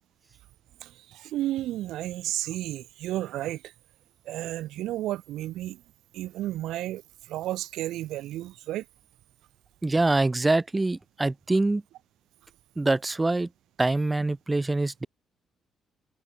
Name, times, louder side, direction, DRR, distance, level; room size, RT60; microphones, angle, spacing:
voice 1, 0.8-3.7 4.2-5.8 6.1-8.8, right 14 dB, 90° right, 4.8 m, -32 dB
voice 2, 9.8-11.8 12.8-13.5 13.8-15.1, right 2 dB, 15° right, 1.6 m, -24 dB
cardioid pair, 125°, 0 cm